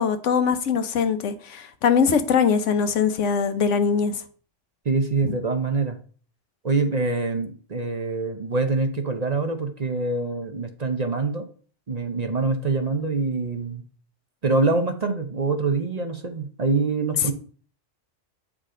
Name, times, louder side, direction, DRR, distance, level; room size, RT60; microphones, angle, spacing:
voice 1, 0.0-4.2 5.2-5.3, left 6 dB, 85° left, 1.1 m, -22 dB
voice 2, 4.8-6.0 6.6-11.5 11.9-13.8 14.4-17.3, right 3 dB, 40° right, 0.7 m, -25 dB
8.2 x 4.9 x 3.8 m
omnidirectional pair, 1.2 m